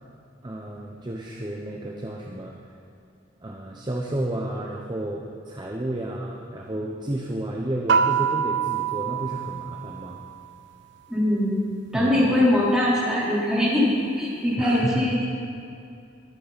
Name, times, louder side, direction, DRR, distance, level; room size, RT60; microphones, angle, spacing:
voice 1, 0.4-2.5 3.4-10.2 11.9-12.3 14.6-15.1, right 1 dB, 20° right, -1 dB, 0.9 m, -31 dB
sound 1, 7.9-10.6, right 7 dB, 65° right, 0.5 m, -25 dB
voice 2, 11.1-11.6 11.9-13.9 14.2-15.2, left 1 dB, 5° right, -8 dB, 3.7 m, -21 dB
22.0 x 9.1 x 4.2 m, 2.5 s
head